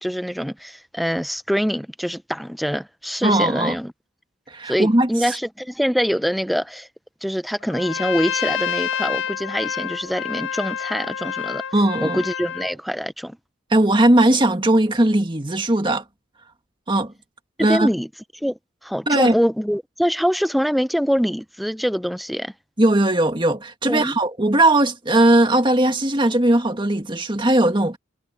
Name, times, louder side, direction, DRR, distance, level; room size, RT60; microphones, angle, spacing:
voice 1, 0.0-3.9 4.7-6.9 7.2-11.6 12.0-13.4 17.7-18.1 18.4-22.5 23.8-24.1, equal, ahead, 0.5 m, -24 dB
voice 2, 3.2-3.7 4.5-5.1 11.7-12.2 13.7-16.0 16.9-17.1 17.6-17.9 19.1-19.3 22.8-28.0, right 1 dB, 25° right, 1.9 m, -18 dB
Trumpet, 7.7-12.7, left 9 dB, 75° left, 1.6 m, -28 dB
head